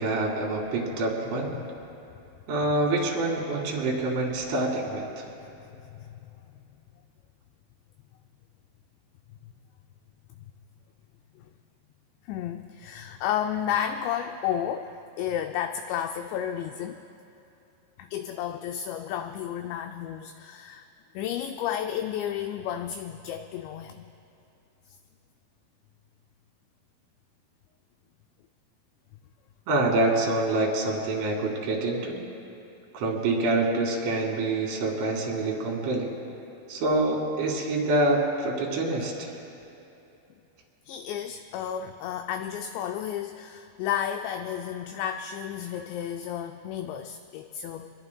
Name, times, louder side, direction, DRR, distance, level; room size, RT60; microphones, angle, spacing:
voice 1, 0.0-1.5 2.5-5.2 29.7-32.2 32.9-36.1 36.7-39.1, right 2 dB, 75° right, -2 dB, 4.5 m, -26 dB
voice 2, 5.9-6.3 12.3-17.0 18.0-20.9 21.1-24.1 40.9-47.9, left 9 dB, 85° left, 6 dB, 2.5 m, -32 dB
26.0 x 21.0 x 2.2 m, 2.8 s
omnidirectional pair, 5.5 m